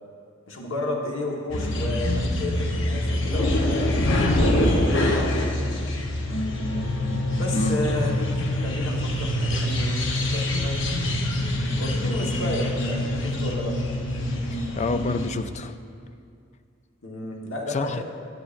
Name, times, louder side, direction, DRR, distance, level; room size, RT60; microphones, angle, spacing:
voice 1, 0.5-3.9 4.4-5.9 7.3-8.3 8.6-10.8 11.8-13.8 17.0-18.0, left 1 dB, 90° left, -1 dB, 1.3 m, -32 dB
sound 1, 1.5-15.3, left 1 dB, 70° left, 0.9 m, -25 dB
voice 2, 14.5-15.7 17.7-18.0, left 3 dB, 35° left, 10 dB, 0.4 m, -28 dB
12.5 x 10.0 x 2.5 m, 2.3 s
head